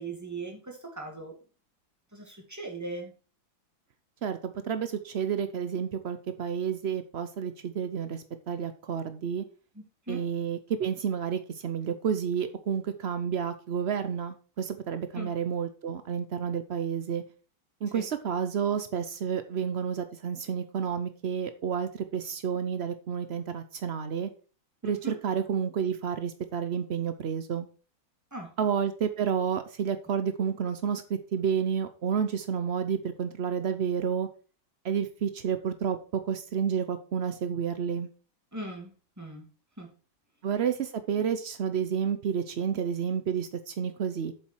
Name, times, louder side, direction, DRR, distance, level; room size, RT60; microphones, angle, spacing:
voice 1, 0.0-1.3 2.1-3.1 9.7-10.2 15.1-15.3 17.9-18.1 24.8-25.2 28.3-28.5 38.5-38.9 39.2-39.5 39.8-39.9, right 2 dB, 10° right, 1 dB, 2.3 m, -39 dB
voice 2, 4.2-9.4 10.1-17.2 17.8-24.3 24.8-27.7 28.6-34.3 34.8-38.1 40.4-44.3, right 7 dB, 80° right, 10 dB, 0.5 m, -30 dB
8.2 x 7.3 x 4.7 m, 0.36 s
omnidirectional pair, 2.1 m